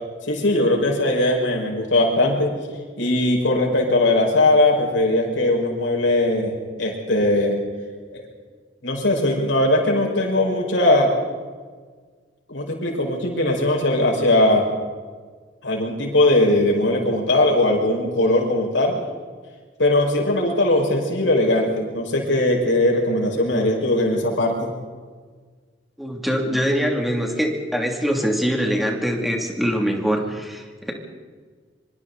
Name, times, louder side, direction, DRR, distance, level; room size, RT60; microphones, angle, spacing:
voice 1, 0.3-2.5 3.0-6.5 6.8-7.6 8.1-8.2 8.8-11.1 12.5-14.7 15.6-18.9 19.8-24.7, left 1 dB, 85° left, 0 dB, 6.0 m, -19 dB
voice 2, 26.0-30.9, equal, ahead, 1 dB, 2.9 m, -23 dB
25.5 x 24.5 x 4.2 m, 1.5 s
head